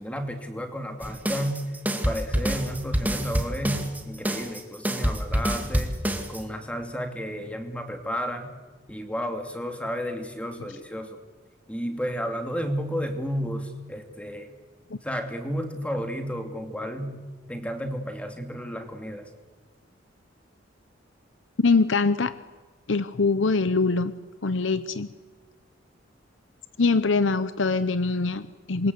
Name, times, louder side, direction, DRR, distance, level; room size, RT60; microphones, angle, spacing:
voice 1, 0.0-1.6 1.9-6.0 6.3-8.5 8.9-11.2 11.7-14.5 15.0-19.3, equal, 5° left, 5 dB, 2.6 m, -32 dB
sound 1, 1.0-6.4, equal, 10° right, 2.1 m, -27 dB
voice 2, 21.6-22.4 22.9-24.1 24.4-25.1 26.8-28.9, left 4 dB, 75° left, 13 dB, 0.8 m, -23 dB
27.5 x 23.0 x 8.2 m, 1.4 s
head